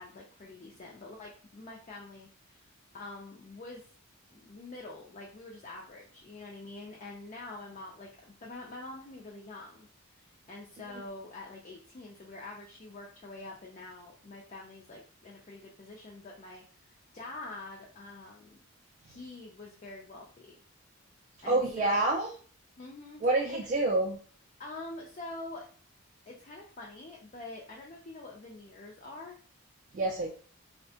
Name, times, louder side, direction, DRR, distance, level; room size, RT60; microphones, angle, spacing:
voice 1, 0.0-2.6 2.9-3.9 4.3-18.6 19.0-20.6 21.4-22.0 22.8-23.2 23.5-23.7 24.6-25.7 26.3-29.4, left 2 dB, 35° left, -2 dB, 0.4 m, -46 dB
voice 2, 21.4-22.3 23.2-24.2 29.9-30.3, right 2 dB, 35° right, -1 dB, 0.3 m, -27 dB
3.4 x 2.1 x 2.7 m, 0.44 s
head